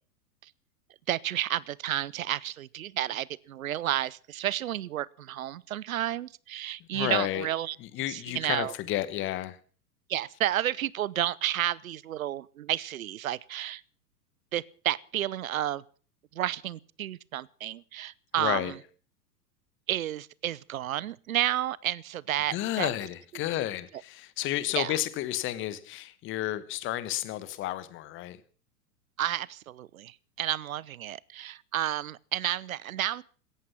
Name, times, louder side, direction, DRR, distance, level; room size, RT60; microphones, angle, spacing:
voice 1, 1.1-7.8 8.1-8.7 10.1-13.8 14.5-15.8 16.3-18.7 19.9-22.9 24.8-24.9 29.2-33.2, right 12 dB, 55° right, 0.9 m, -31 dB
voice 2, 6.8-7.5 7.8-9.6 18.4-18.7 22.5-28.4, left 14 dB, 25° left, 1.2 m, -31 dB
17.0 x 14.0 x 5.8 m
figure-of-eight pair, 100°, 48 cm